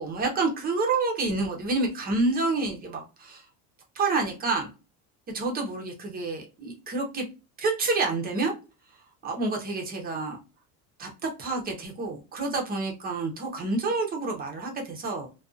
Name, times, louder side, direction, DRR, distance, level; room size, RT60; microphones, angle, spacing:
voice 1, 0.0-3.4 4.0-4.7 5.3-7.2 7.6-8.5 9.2-10.4 11.0-15.3, right 3 dB, 25° right, 2 dB, 0.6 m, -28 dB
2.5 x 2.3 x 2.3 m, 0.31 s
cardioid pair, 155°, 39 cm